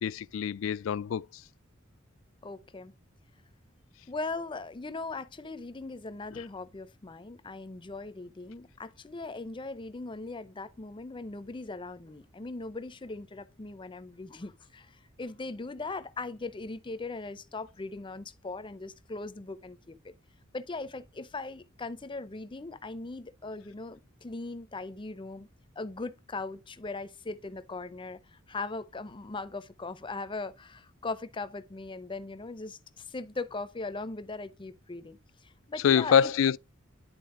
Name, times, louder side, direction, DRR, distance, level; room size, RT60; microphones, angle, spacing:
voice 1, 0.0-1.3 6.3-6.4 35.8-36.6, left 8 dB, 70° left, 0.3 m, -25 dB
voice 2, 2.4-2.9 4.1-14.9 15.2-20.1 20.5-25.5 25.8-35.2 35.7-36.3, left 3 dB, 25° left, 0.6 m, -39 dB
10.5 x 4.0 x 3.7 m
head